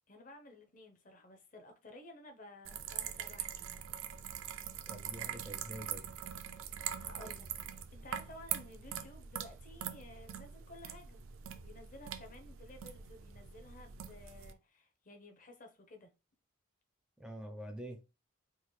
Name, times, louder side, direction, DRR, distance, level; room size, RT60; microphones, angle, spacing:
voice 1, 0.1-3.9 6.6-7.5 7.9-11.2 11.6-16.1, left 1 dB, 40° left, 0.7 m, -54 dB
sound 1, 2.6-14.5, right 9 dB, 80° right, 0.4 m, -43 dB
voice 2, 4.9-6.1 17.2-18.0, right 1 dB, 5° right, 0.5 m, -46 dB
3.8 x 2.5 x 3.1 m
head